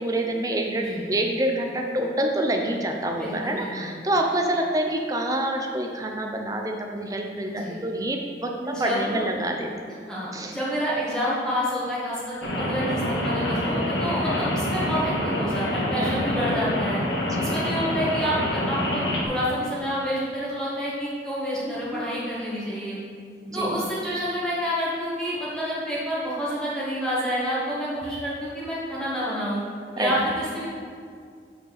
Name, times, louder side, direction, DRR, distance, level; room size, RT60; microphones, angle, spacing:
voice 1, 0.0-9.9 10.3-10.5 13.6-14.0 15.9-16.2 17.2-17.6 21.6-22.1 23.5-23.8 27.9-28.0 30.0-30.1, right 1 dB, 20° right, 2 dB, 0.7 m, -27 dB
voice 2, 3.2-3.9 7.5-7.8 8.6-9.3 10.1-17.0 17.4-23.0 23.5-29.6 30.0-30.7, equal, 5° left, -9 dB, 1.8 m, -28 dB
Rain, 12.4-19.2, left 1 dB, 85° left, 1.4 m, -26 dB
6.5 x 5.3 x 6.6 m, 2.2 s
head